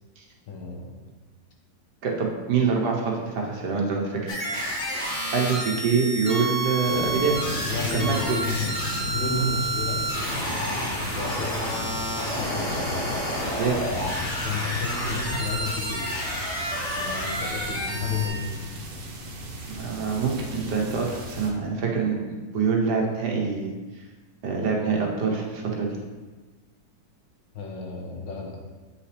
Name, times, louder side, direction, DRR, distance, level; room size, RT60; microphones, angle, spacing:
voice 1, 0.5-0.9 7.6-12.9 13.9-16.1 16.9-18.9 27.5-28.6, left 3 dB, 85° left, -1 dB, 1.9 m, -32 dB
voice 2, 2.0-4.4 5.3-7.4 7.9-8.4 13.6-13.8 19.7-22.2 22.5-23.7 24.4-26.0, right 5 dB, 65° right, -1 dB, 1.7 m, -25 dB
sound 1, 4.3-18.3, right 1 dB, 45° left, 1.9 m, -30 dB
sound 2, 6.8-21.5, equal, 90° right, 1.9 m, -36 dB
8.3 x 5.7 x 3.4 m, 1.3 s
omnidirectional pair, 1.9 m